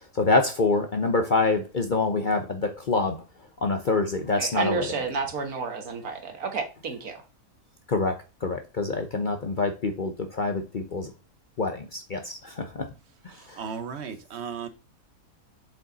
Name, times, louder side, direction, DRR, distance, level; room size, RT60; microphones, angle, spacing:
voice 1, 0.1-3.2 3.6-4.9 7.9-8.1 8.4-11.1 11.6-12.9, left 3 dB, 45° left, 0.7 m, -26 dB
voice 2, 4.4-7.2, right 4 dB, 80° right, 1.9 m, -30 dB
voice 3, 13.3-14.7, right 6 dB, 55° right, 1.1 m, -36 dB
7.1 x 5.1 x 4.0 m
omnidirectional pair, 1.5 m